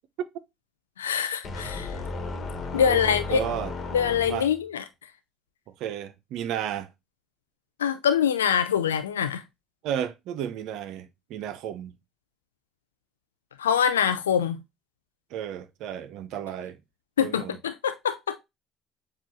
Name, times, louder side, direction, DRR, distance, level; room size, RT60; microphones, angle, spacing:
voice 1, 1.0-2.0 2.7-3.4 3.9-4.8 7.8-9.4 13.6-14.6 17.2-18.4, left 8 dB, 85° left, 0.3 m, -24 dB
sound 1, 1.4-4.6, left 3 dB, 45° left, 1.3 m, -34 dB
voice 2, 2.8-3.7 4.2-4.5 5.8-6.9 9.8-11.9 15.3-16.8 17.2-17.6, right 10 dB, 65° right, 0.5 m, -33 dB
7.2 x 2.4 x 2.9 m
hypercardioid pair, 55°, 0 cm